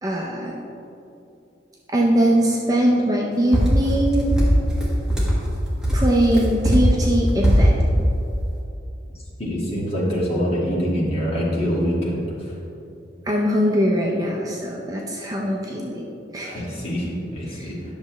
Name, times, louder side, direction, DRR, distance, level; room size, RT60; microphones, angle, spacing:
voice 1, 0.0-0.6 1.9-4.3 5.9-7.7 13.3-16.1 16.3-16.6 17.5-17.7, equal, 20° right, -2 dB, 0.6 m, -21 dB
sound 1, 3.5-5.4 5.8-7.8, equal, 5° right, 1.5 m, -18 dB
voice 2, 9.4-12.6 16.4-17.9, equal, 35° left, -6 dB, 1.7 m, -25 dB
10.5 x 6.6 x 3.1 m, 2.7 s
head